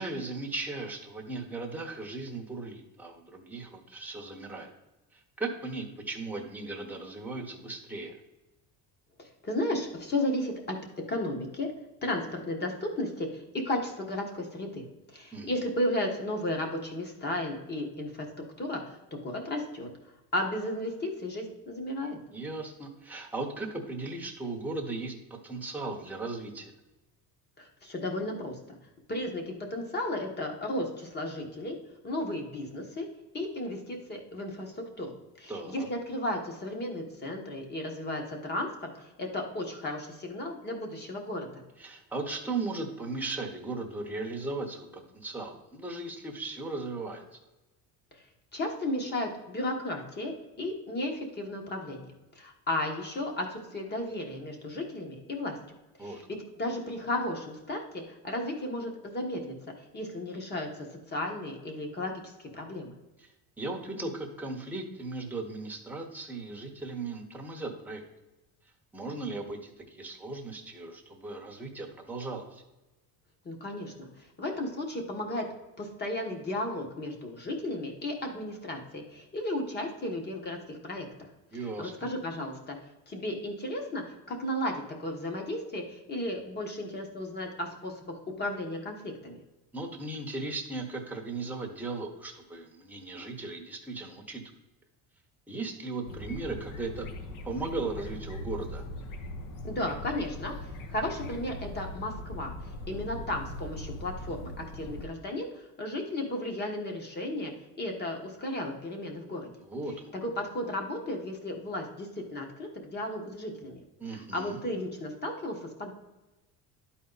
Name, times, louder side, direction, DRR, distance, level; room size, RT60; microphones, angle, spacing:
voice 1, 0.0-4.7 5.1-8.2 15.3-15.5 22.3-26.7 35.5-35.9 41.8-47.2 56.0-56.2 63.2-63.3 63.6-68.0 68.9-72.6 81.5-81.9 89.7-94.4 95.5-97.1 97.4-98.8 109.6-110.1 114.0-114.6, right 3 dB, 5° right, 0 dB, 1.0 m, -37 dB
voice 2, 9.2-10.8 11.1-11.7 12.0-19.9 20.3-22.2 27.6-28.8 29.1-31.8 32.0-33.1 33.3-41.6 48.1-48.2 48.5-55.6 56.0-59.5 59.9-62.9 73.4-74.1 74.4-75.4 75.8-81.1 81.8-82.8 83.1-89.4 99.6-109.5 110.1-113.8 114.1-115.9, left 1 dB, 25° left, 2 dB, 1.4 m, -34 dB
sound 1, 96.0-105.1, left 1 dB, 55° left, 1.2 m, -40 dB
12.0 x 4.2 x 4.0 m, 1.0 s
cardioid pair, 160°, 38 cm